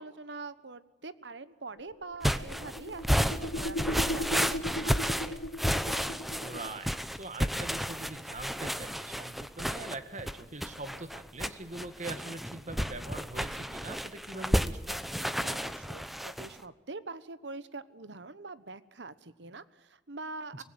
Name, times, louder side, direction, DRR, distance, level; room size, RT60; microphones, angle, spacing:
voice 1, 0.0-5.4 15.4-20.6, right 3 dB, 75° right, 15 dB, 1.2 m, -44 dB
sound 1, 1.8-6.8, left 1 dB, 75° left, 0.9 m, -37 dB
sound 2, 2.2-16.5, equal, ahead, 0.9 m, -32 dB
voice 2, 6.4-15.0 20.5-20.6, right 2 dB, 40° right, 10 dB, 1.9 m, -42 dB
24.5 x 19.5 x 9.1 m, 1.1 s
head